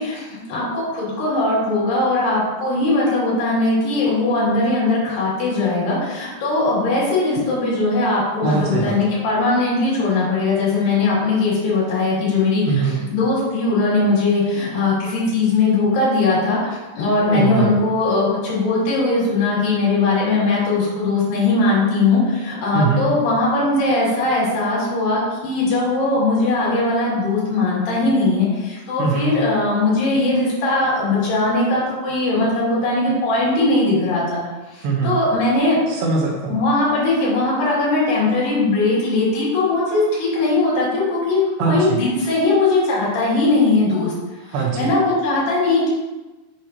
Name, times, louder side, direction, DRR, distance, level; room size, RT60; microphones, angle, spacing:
voice 1, 0.0-12.6 13.1-34.4 34.7-35.8 36.5-44.1 44.8-45.9, left 2 dB, 55° left, -7 dB, 3.9 m, -19 dB
voice 2, 8.4-9.0 12.7-13.0 17.3-17.8 22.7-23.1 29.0-29.4 34.8-35.2 35.9-36.6 41.6-42.0 44.4-44.9, right 4 dB, 75° right, -2 dB, 3.0 m, -21 dB
7.6 x 6.7 x 2.9 m, 1.1 s
omnidirectional pair, 5.1 m